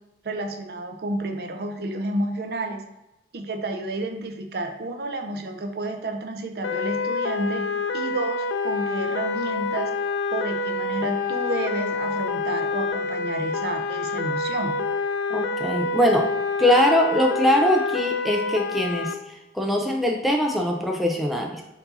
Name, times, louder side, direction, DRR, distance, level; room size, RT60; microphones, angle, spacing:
voice 1, 0.2-2.9 3.3-7.7 7.9-9.9 10.3-14.8, right 2 dB, 60° right, 4 dB, 0.5 m, -30 dB
sound 1, 6.6-19.1, left 3 dB, 85° left, 0.3 m, -27 dB
voice 2, 15.3-16.3 16.6-21.6, left 1 dB, ahead, 1 dB, 0.3 m, -22 dB
4.5 x 2.7 x 4.0 m, 0.96 s
head